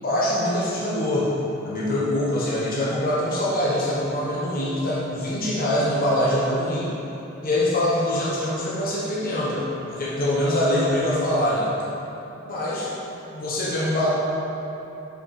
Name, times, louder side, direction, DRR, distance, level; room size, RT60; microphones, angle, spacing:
voice 1, 0.0-1.3 1.6-6.9 7.4-11.7 12.4-12.9 13.3-14.1, left 1 dB, 45° left, -7 dB, 1.2 m, -24 dB
8.5 x 5.1 x 4.2 m, 3.0 s
head